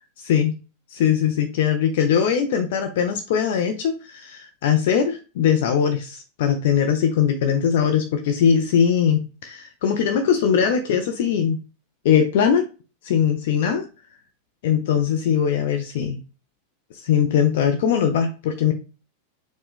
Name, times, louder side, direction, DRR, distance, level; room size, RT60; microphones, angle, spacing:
voice 1, 0.2-0.6 0.9-11.6 12.0-12.6 13.0-13.9 14.6-16.2 16.9-18.7, left 8 dB, 55° left, 5 dB, 0.6 m, -21 dB
4.5 x 2.3 x 3.6 m, 0.33 s
figure-of-eight pair, 90°, 0 cm